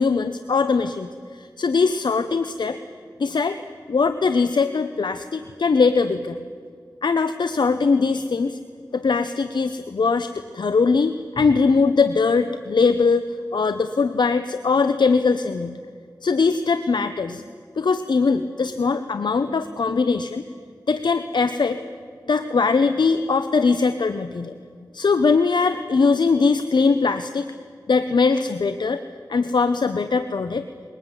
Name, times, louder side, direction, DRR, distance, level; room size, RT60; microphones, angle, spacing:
voice 1, 0.0-2.8 3.2-3.6 3.9-6.4 7.0-8.6 8.9-13.2 13.5-15.8 16.2-17.4 17.8-20.4 20.9-21.8 22.3-24.5 24.9-27.5 27.9-29.0 29.3-30.6, left 4 dB, 80° left, 10 dB, 0.9 m, -21 dB
22.0 x 19.5 x 9.9 m, 2.1 s
wide cardioid pair, 50°, 8 cm